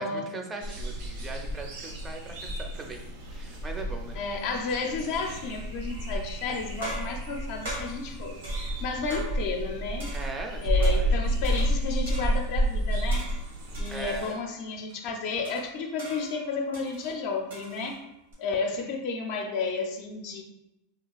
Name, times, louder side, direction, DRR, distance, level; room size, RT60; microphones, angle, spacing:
voice 1, 0.0-3.0 3.3-4.2 10.1-11.1 13.9-14.4, right 3 dB, 20° right, 3 dB, 0.4 m, -39 dB
sound 1, 0.6-14.2, right 1 dB, 75° right, 0.6 m, -30 dB
voice 2, 4.1-10.1 10.6-13.3 13.8-18.0 18.4-20.4, left 4 dB, 60° left, 2 dB, 0.4 m, -32 dB
sound 2, 5.9-6.3 6.8-9.7 10.0-11.1 11.4-12.6 13.1-14.4 14.9-15.0 15.4-18.3, right 1 dB, 90° right, 1.4 m, -42 dB
3.2 x 2.3 x 2.3 m, 0.89 s
hypercardioid pair, 110°, 0 cm